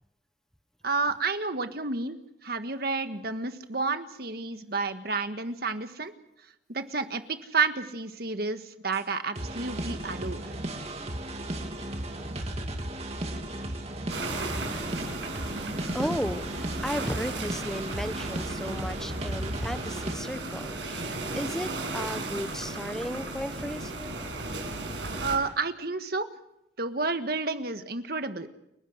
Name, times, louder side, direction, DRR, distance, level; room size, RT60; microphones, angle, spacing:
voice 1, 0.8-2.2 2.4-6.1 6.7-10.5 25.2-26.3 26.8-28.5, right 4 dB, 55° right, 8 dB, 1.6 m, -30 dB
sound 1, 8.9-9.0 9.3-20.1, right 1 dB, 35° right, 2.4 m, -35 dB
sound 2, 14.1-25.4, right 2 dB, 85° right, 6.4 m, -35 dB
voice 2, 14.2-14.8 15.6-24.1, equal, 5° left, 11 dB, 0.9 m, -35 dB
30.0 x 12.0 x 8.1 m, 0.83 s
head